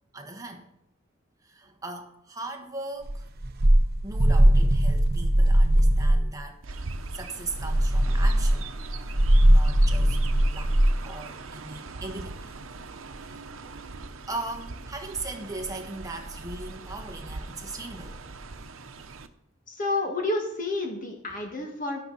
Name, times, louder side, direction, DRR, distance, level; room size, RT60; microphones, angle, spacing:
voice 1, 0.1-0.7 1.4-3.2 4.0-6.8 7.1-9.1 9.5-10.8 11.0-12.6 13.2-13.4 14.3-18.2, right 2 dB, 15° right, 4 dB, 1.5 m, -39 dB
sound 1, 3.1-6.3 7.5-11.0, right 1 dB, 50° right, 1.0 m, -20 dB
Chirp tweet, 6.6-19.3, right 3 dB, 80° right, 0.9 m, -41 dB
voice 2, 19.7-22.0, left 2 dB, 40° left, 1 dB, 1.9 m, -29 dB
11.5 x 11.5 x 4.1 m, 0.73 s
head